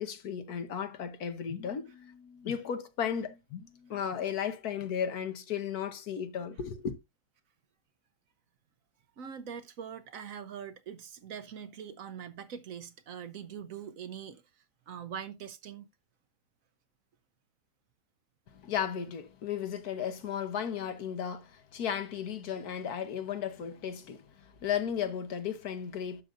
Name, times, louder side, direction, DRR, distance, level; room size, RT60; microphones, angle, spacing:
voice 1, 0.0-7.0 18.5-26.2, left 8 dB, 70° left, 1.5 m, -35 dB
voice 2, 9.2-14.4 14.9-15.9, right 8 dB, 65° right, 1.1 m, -43 dB
11.0 x 6.8 x 2.5 m
omnidirectional pair, 1.7 m